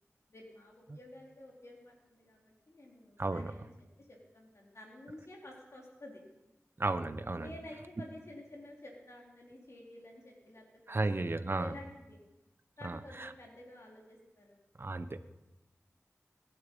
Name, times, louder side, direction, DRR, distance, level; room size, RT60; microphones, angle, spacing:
voice 1, 0.3-3.7 4.0-6.2 7.3-11.3 11.6-12.2 12.8-14.6, left 1 dB, 60° left, -2 dB, 4.0 m, -51 dB
voice 2, 3.2-3.5 6.8-7.5 10.9-11.7 12.8-13.3 14.8-15.2, right 2 dB, 45° right, 11 dB, 1.1 m, -34 dB
22.0 x 11.5 x 5.5 m, 1.0 s
wide cardioid pair, 60°, 5 cm